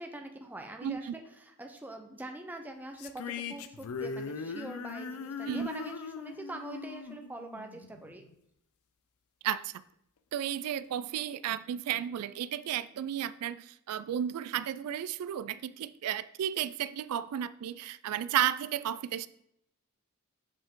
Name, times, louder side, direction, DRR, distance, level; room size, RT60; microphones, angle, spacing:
voice 1, 0.0-8.2, right 2 dB, 10° right, 3 dB, 0.5 m, -44 dB
voice 2, 0.8-1.1 5.5-5.7 9.4-9.7 10.3-19.3, right 10 dB, 85° right, 16 dB, 0.3 m, -33 dB
sound 1, 3.0-8.3, left 5 dB, 75° left, 0.5 m, -40 dB
7.0 x 5.1 x 3.6 m, 0.76 s
head